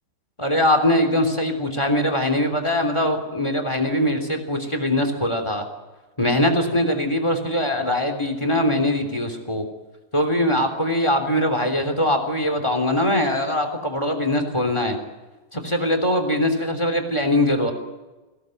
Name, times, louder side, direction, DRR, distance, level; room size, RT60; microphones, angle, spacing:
voice 1, 0.4-5.6 6.2-9.6 10.1-15.0 15.5-17.7, left 1 dB, 15° left, 6 dB, 3.4 m, -22 dB
23.5 x 18.0 x 9.3 m, 1.2 s
omnidirectional pair, 2.0 m